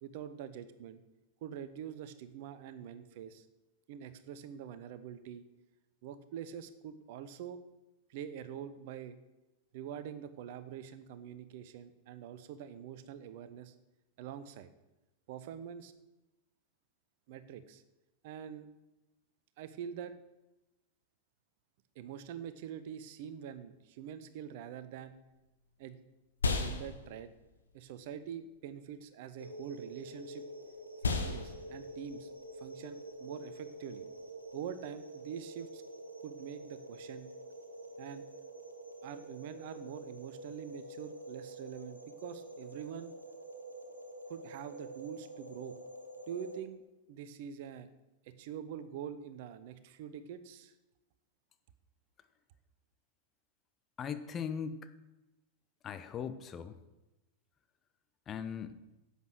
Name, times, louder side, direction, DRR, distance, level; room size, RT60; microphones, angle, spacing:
voice 1, 0.0-1.0 1.4-3.5 3.9-5.4 6.0-7.6 8.1-9.2 9.7-13.7 14.2-14.7 15.3-15.9 17.3-17.8 18.2-18.7 19.6-20.1 21.9-25.2 25.8-26.0 26.5-27.3 27.7-30.5 31.0-32.3 32.5-34.1 34.5-35.8 36.2-37.3 38.0-38.3 39.0-43.1 44.3-45.8 46.3-46.8 47.1-47.9 48.2-50.7, right 8 dB, 50° right, 12 dB, 0.9 m, -45 dB
sound 1, 25.0-34.7, left 3 dB, 70° left, 1.3 m, -39 dB
sound 2, 29.4-46.6, right 2 dB, 85° right, 1.4 m, -47 dB
voice 2, 54.0-54.9 55.8-56.8 58.3-58.8, left 7 dB, 25° left, 10 dB, 0.8 m, -39 dB
11.0 x 8.4 x 6.2 m, 0.99 s
figure-of-eight pair, 90°, 0 cm